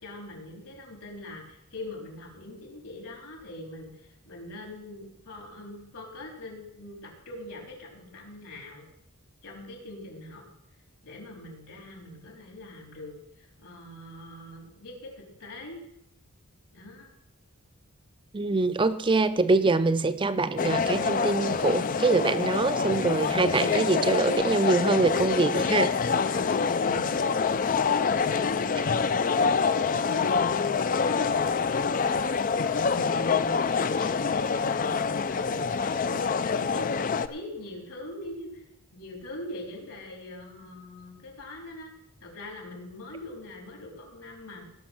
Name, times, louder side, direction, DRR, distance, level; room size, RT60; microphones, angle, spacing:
voice 1, 0.0-8.8 9.4-10.4 11.0-15.8 16.7-17.1 26.3-27.8 28.0-29.1 29.8-38.6 38.9-41.9 42.2-44.7, left 1 dB, 80° left, 0 dB, 4.0 m, -43 dB
voice 2, 18.3-25.9, right 3 dB, 20° right, 12 dB, 0.5 m, -24 dB
sound 1, 20.6-37.3, left 5 dB, 35° left, 0.4 m, -26 dB
18.0 x 6.3 x 6.0 m, 0.76 s
head